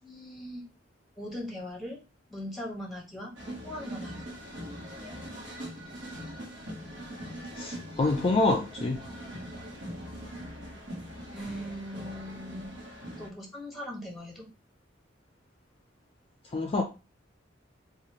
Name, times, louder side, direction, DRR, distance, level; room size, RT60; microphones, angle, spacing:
voice 1, 0.0-0.6 1.2-2.0 2.3-3.3 3.6-4.3 11.3-12.7 13.2-14.5, equal, ahead, 1.1 m, -40 dB
sound 1, 3.4-13.3, equal, 80° right, 1.1 m, -41 dB
voice 2, 7.5-9.0 16.5-16.8, left 2 dB, 30° left, 0.4 m, -26 dB
3.0 x 2.3 x 3.9 m
head